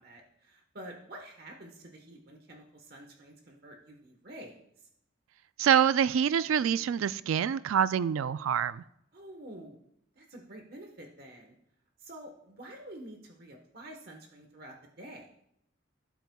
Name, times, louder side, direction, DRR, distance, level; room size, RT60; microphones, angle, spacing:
voice 1, 0.0-4.9 9.1-9.8 10.2-11.6 12.0-15.3, right 1 dB, 50° right, 2 dB, 1.2 m, -48 dB
voice 2, 5.6-8.8, right 8 dB, 85° right, 15 dB, 0.3 m, -26 dB
17.0 x 8.1 x 2.3 m, 0.76 s
head